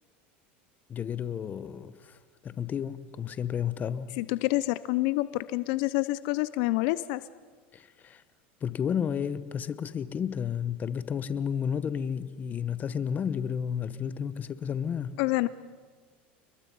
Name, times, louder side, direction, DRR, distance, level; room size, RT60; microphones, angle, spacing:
voice 1, 0.9-4.2 7.7-8.2 8.6-15.2, left 8 dB, 30° left, 1.0 m, -32 dB
voice 2, 4.2-7.2 15.2-15.5, left 19 dB, 65° left, 0.6 m, -27 dB
30.0 x 22.0 x 5.5 m
supercardioid pair, 115°, 6 cm